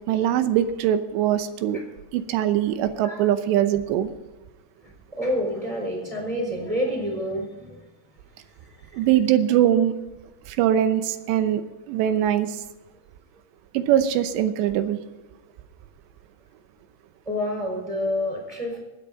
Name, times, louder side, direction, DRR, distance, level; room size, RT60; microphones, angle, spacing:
voice 1, 0.1-1.8 2.1-4.1 8.9-9.9 10.5-11.6 11.9-12.6 13.7-15.0, right 11 dB, 85° right, 10 dB, 3.0 m, -22 dB
voice 2, 2.8-3.3 4.8-7.8 8.6-9.1 17.2-18.8, equal, 10° right, 0 dB, 4.4 m, -29 dB
22.0 x 8.5 x 4.0 m, 1.1 s
omnidirectional pair, 4.9 m